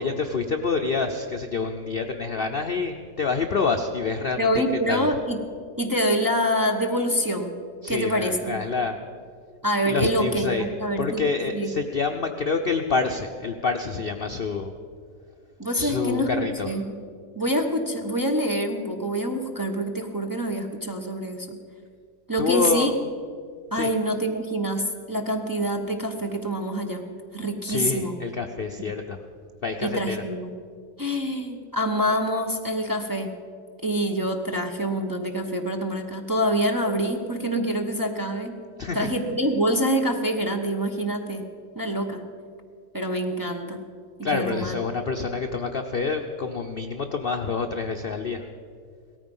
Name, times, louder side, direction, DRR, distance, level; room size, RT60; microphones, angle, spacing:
voice 1, 0.0-4.5 4.9-5.1 7.8-9.0 9.9-10.6 11.0-14.7 15.7-16.7 22.4-22.9 23.7-23.9 27.7-29.2 29.6-30.2 38.8-39.1 44.2-48.4, left 4 dB, 75° left, 5 dB, 0.5 m, -27 dB
voice 2, 4.4-5.4 5.8-7.6 7.9-8.6 9.6-11.7 15.6-17.0 17.4-21.6 22.3-22.9 23.7-27.1 27.3-28.2 28.8-28.9 29.8-30.5 31.0-33.3 33.8-38.5 38.9-41.5 41.7-42.2 42.9-43.8 44.3-44.8, equal, 15° right, 2 dB, 0.7 m, -26 dB
17.5 x 14.0 x 5.4 m, 2.2 s
omnidirectional pair, 1.9 m